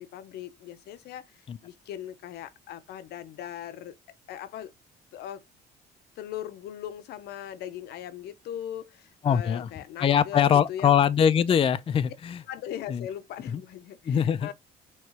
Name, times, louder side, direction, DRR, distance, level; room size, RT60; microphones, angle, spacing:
voice 1, 0.0-4.0 4.3-4.7 5.1-5.4 6.2-11.0 12.5-14.5, left 11 dB, 75° left, 0.8 m, -39 dB
voice 2, 9.2-9.7 10.0-12.4 12.9-13.0 13.5-13.6 14.1-14.5, left 8 dB, 35° left, 0.5 m, -22 dB
6.5 x 3.1 x 4.8 m
cardioid pair, 110°, 17 cm